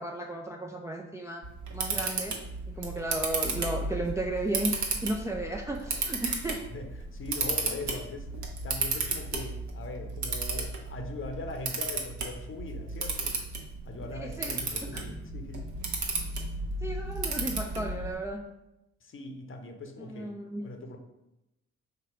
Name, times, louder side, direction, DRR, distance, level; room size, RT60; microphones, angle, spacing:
voice 1, 0.0-1.4 1.7-2.4 2.7-6.6 14.2-15.0 16.8-18.4 20.0-20.7, right 1 dB, 10° right, 1 dB, 0.4 m, -34 dB
Camera, 1.4-18.1, right 3 dB, 50° right, 1.0 m, -34 dB
voice 2, 7.1-8.3 8.6-13.4 13.8-15.6 19.0-20.3 20.6-21.0, left 2 dB, 35° left, 5 dB, 0.8 m, -41 dB
3.8 x 2.9 x 4.6 m, 0.91 s
figure-of-eight pair, 40°, 37 cm